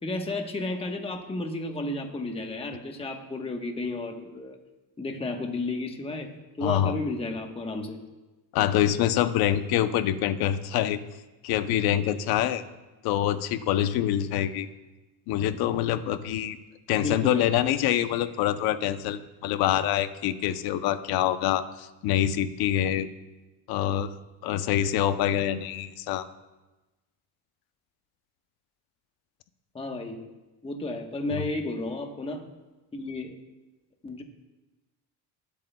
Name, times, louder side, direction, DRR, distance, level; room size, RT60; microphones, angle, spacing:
voice 1, 0.0-4.6 5.0-8.0 16.9-17.4 29.7-30.2 30.6-32.4 32.9-33.4 34.0-34.2, left 2 dB, 15° left, 4 dB, 1.1 m, -32 dB
voice 2, 6.6-6.9 8.5-11.0 11.4-12.6 13.0-14.7 15.3-16.6 16.9-23.1 23.7-24.1 24.4-26.3 31.3-31.4, left 11 dB, 70° left, 11 dB, 0.8 m, -25 dB
20.0 x 8.3 x 2.3 m, 1.1 s
cardioid pair, 110°, 40 cm